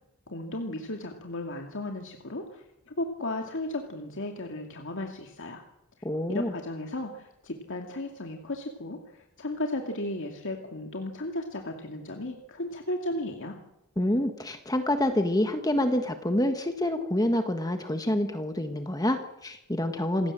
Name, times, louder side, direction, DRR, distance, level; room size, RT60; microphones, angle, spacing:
voice 1, 0.3-5.6 6.3-13.6, left 1 dB, 60° left, 3 dB, 2.4 m, -35 dB
voice 2, 6.0-6.5 14.0-20.3, left 1 dB, 15° left, 6 dB, 1.5 m, -27 dB
27.5 x 18.0 x 7.6 m, 0.88 s
head